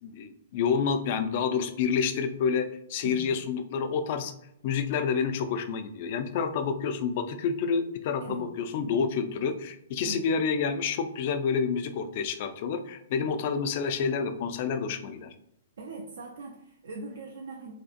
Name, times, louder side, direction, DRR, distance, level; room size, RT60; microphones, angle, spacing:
voice 1, 0.0-4.3 4.6-15.3, left 6 dB, 50° left, 8 dB, 0.3 m, -28 dB
voice 2, 15.8-17.7, right 3 dB, 70° right, 0 dB, 0.5 m, -40 dB
2.6 x 2.4 x 2.4 m, 0.75 s
hypercardioid pair, 120°, 0 cm